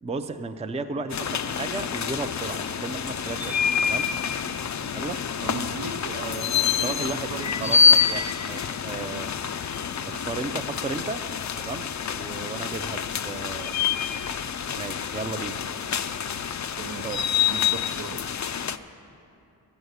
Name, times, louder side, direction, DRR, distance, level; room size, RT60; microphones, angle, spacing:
voice 1, 0.0-3.6 3.8-4.1 4.9-5.2 6.7-7.3 7.6-9.3 10.0-11.2 11.6-11.9 12.1-13.7 14.8-15.6 17.0-17.2, right 3 dB, 15° right, 7 dB, 0.4 m, -34 dB
sound 1, 1.1-18.8, left 6 dB, 45° left, 0.4 m, -27 dB
voice 2, 5.4-7.7 16.8-17.1 17.5-18.4, right 4 dB, 70° right, 6 dB, 0.8 m, -36 dB
13.5 x 7.0 x 8.0 m, 2.7 s
wide cardioid pair, 75°, 41 cm